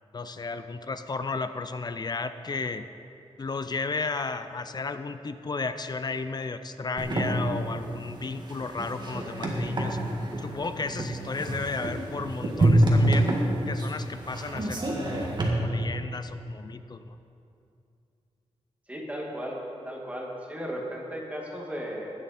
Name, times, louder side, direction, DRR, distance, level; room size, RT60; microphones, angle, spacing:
voice 1, 0.1-2.9 3.4-10.0 10.4-13.3 13.7-17.2, left 4 dB, 40° left, 10 dB, 0.5 m, -33 dB
sound 1, 7.0-15.5, right 1 dB, 40° right, 1.9 m, -27 dB
voice 2, 18.9-19.6 19.9-22.1, equal, 10° right, -2 dB, 2.1 m, -35 dB
16.5 x 11.0 x 4.3 m, 2.6 s
wide cardioid pair, 130°, 11 cm